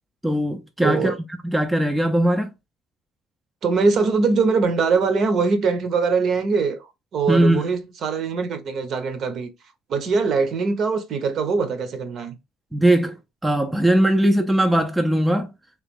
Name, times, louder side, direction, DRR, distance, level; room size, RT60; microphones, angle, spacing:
voice 1, 0.2-1.1 1.4-2.5 7.3-7.6 12.7-13.2 13.4-15.5, right 1 dB, 5° right, 0.4 m, -19 dB
voice 2, 0.8-1.2 3.6-6.9 7.1-9.5 9.9-12.4, right 4 dB, 45° right, 0.7 m, -22 dB
3.3 x 3.0 x 3.5 m
cardioid pair, 145°, 0 cm